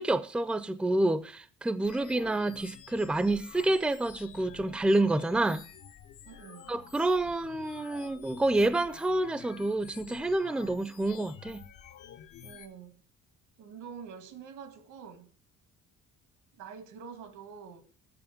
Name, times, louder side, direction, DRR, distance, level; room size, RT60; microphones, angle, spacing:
voice 1, 0.0-5.6 6.7-11.6, right 2 dB, 5° right, 0.5 m, -28 dB
sound 1, 1.8-12.7, left 9 dB, 80° left, 1.1 m, -50 dB
voice 2, 6.2-6.7 12.4-13.0 13.6-15.3 16.5-17.8, right 6 dB, 85° right, 1.9 m, -46 dB
7.9 x 6.7 x 7.2 m
cardioid pair, 110°, 30 cm